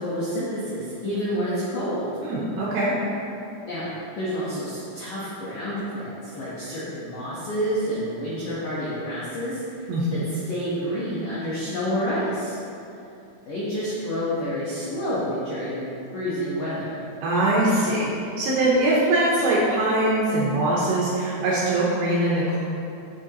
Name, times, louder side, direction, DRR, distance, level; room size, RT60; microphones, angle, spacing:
voice 1, 0.0-2.1 3.6-12.6 13.5-17.0, equal, 75° left, -9 dB, 1.9 m, -29 dB
voice 2, 2.2-2.9 9.9-10.2 17.2-22.6, right 1 dB, 75° right, -6 dB, 2.5 m, -22 dB
8.8 x 7.3 x 2.9 m, 2.7 s
omnidirectional pair, 5.6 m